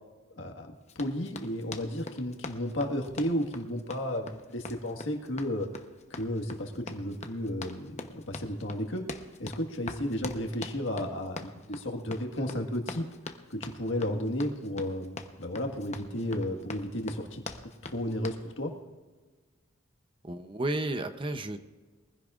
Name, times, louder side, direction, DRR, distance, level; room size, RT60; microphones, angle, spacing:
voice 1, 0.3-5.7 6.1-9.1 9.4-13.0 13.5-17.4 17.8-18.7, left 1 dB, 65° left, 3 dB, 1.7 m, -33 dB
Run, 0.9-18.5, left 3 dB, 35° left, 0.9 m, -43 dB
voice 2, 20.2-21.6, right 2 dB, 25° right, 9 dB, 0.7 m, -32 dB
23.0 x 15.5 x 2.5 m, 1.4 s
head